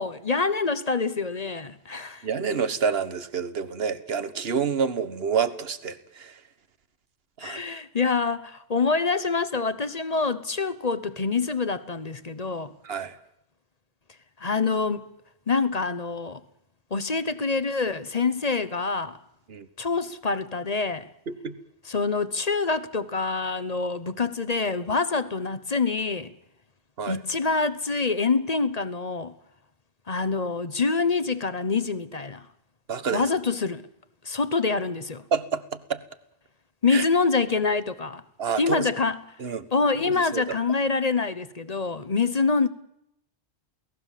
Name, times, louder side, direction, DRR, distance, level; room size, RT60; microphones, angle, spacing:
voice 1, 0.0-2.3 7.4-12.7 14.4-15.1 15.5-16.4 16.9-19.2 19.8-21.1 21.9-26.3 27.1-29.3 30.1-32.5 33.1-33.8 34.2-35.2 36.8-38.2 38.6-39.2 39.7-42.7, left 4 dB, 35° left, 1.0 m, -26 dB
voice 2, 2.2-6.4 7.4-7.6 12.8-13.2 19.5-19.7 21.3-21.5 27.0-27.2 32.9-33.2 35.3-36.0 36.9-37.0 38.4-38.9 39.4-39.7 40.0-40.5, right 6 dB, 60° right, 1.6 m, -28 dB
28.5 x 18.0 x 7.5 m
omnidirectional pair, 1.1 m